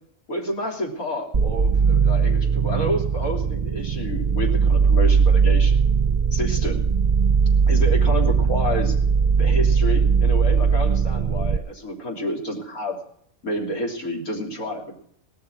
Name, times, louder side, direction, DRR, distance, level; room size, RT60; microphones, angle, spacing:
voice 1, 0.3-5.8 6.3-6.9 7.7-8.9 9.4-13.0 13.4-14.9, equal, 80° left, -1 dB, 3.8 m, -29 dB
sound 1, 1.3-11.6, right 6 dB, 35° right, 0.8 m, -19 dB
17.5 x 13.5 x 4.7 m, 0.66 s
omnidirectional pair, 1.5 m